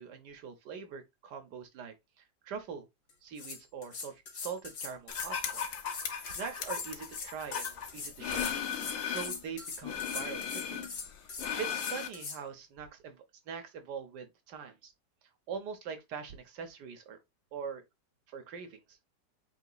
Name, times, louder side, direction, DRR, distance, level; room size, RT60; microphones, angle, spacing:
voice 1, 0.0-2.9 3.2-5.7 6.2-8.6 9.0-10.9 11.2-14.9 15.5-17.2 17.5-17.8 18.3-19.0, right 6 dB, 70° right, 1.5 m, -43 dB
sound 1, 3.1-3.2 3.4-12.4, left 4 dB, 85° left, 1.9 m, -41 dB
sound 2, 5.1-9.4 9.8-12.1, left 8 dB, 55° left, 1.1 m, -37 dB
8.0 x 2.9 x 2.3 m
omnidirectional pair, 1.9 m